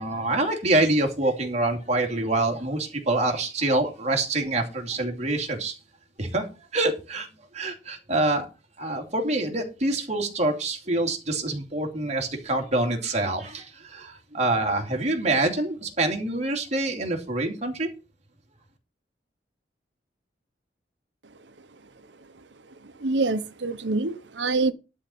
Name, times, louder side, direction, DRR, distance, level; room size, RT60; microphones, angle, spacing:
voice 1, 0.0-5.8 6.2-6.5 6.7-7.3 7.5-8.5 8.8-17.9, right 2 dB, 40° right, 2.6 m, -26 dB
voice 2, 22.2-24.7, right 3 dB, 85° right, 0.9 m, -27 dB
12.0 x 4.3 x 7.7 m
head